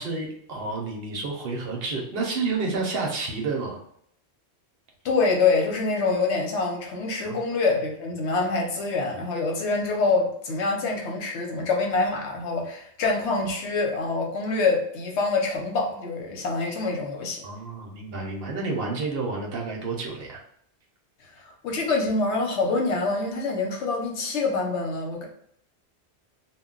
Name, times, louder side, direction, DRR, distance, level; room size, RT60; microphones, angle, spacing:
voice 1, 0.0-3.8 7.2-7.4 17.4-20.4, right 3 dB, 60° right, 0 dB, 0.8 m, -30 dB
voice 2, 5.0-17.5 21.4-25.3, left 3 dB, 80° left, 1 dB, 1.0 m, -25 dB
2.2 x 2.2 x 3.7 m, 0.66 s
omnidirectional pair, 1.1 m